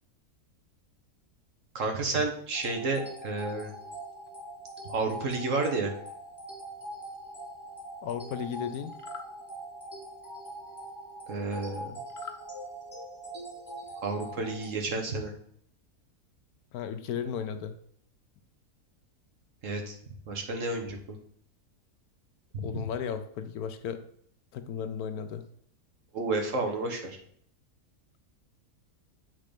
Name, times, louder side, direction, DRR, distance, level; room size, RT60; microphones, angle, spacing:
voice 1, 1.7-3.7 4.8-5.9 11.3-12.0 14.0-15.3 19.6-19.9 20.3-21.2 22.5-22.8 26.1-27.2, right 3 dB, 55° right, 4 dB, 1.5 m, -31 dB
sound 1, 2.5-14.7, right 1 dB, 5° right, 2.0 m, -43 dB
voice 2, 8.0-8.9 16.7-17.7 22.6-24.0 24.5-25.4, left 7 dB, 75° left, 8 dB, 1.1 m, -35 dB
sound 2, 8.9-9.3 12.1-12.4, left 6 dB, 50° left, 0.7 m, -43 dB
7.5 x 3.7 x 5.1 m, 0.63 s
omnidirectional pair, 1.6 m